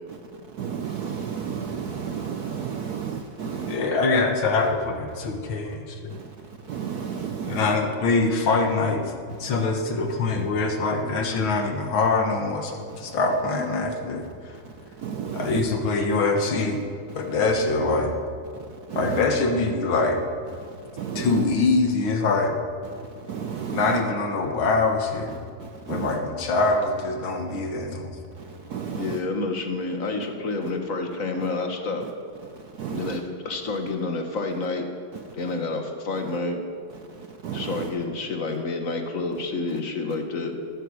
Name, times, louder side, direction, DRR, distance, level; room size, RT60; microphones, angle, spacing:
voice 1, 0.6-3.8 6.1-6.3 6.7-7.7 12.9-13.0 15.0-15.6 18.9-19.2 21.0-21.4 23.3-24.0 25.6-26.2 28.4-29.2 32.8-33.2 37.4-37.9, right 7 dB, 70° right, 6 dB, 0.9 m, -32 dB
voice 2, 3.7-6.1 7.5-9.1 9.4-14.6 15.3-16.8 17.2-18.1 19.0-20.2 21.2-22.6 23.7-25.3 25.9-28.1, left 3 dB, 70° left, 4 dB, 2.2 m, -24 dB
voice 3, 28.9-32.1 32.9-34.9 35.3-36.6 37.5-40.5, left 3 dB, 45° left, 5 dB, 1.6 m, -29 dB
14.5 x 11.5 x 6.4 m, 2.3 s
omnidirectional pair, 2.3 m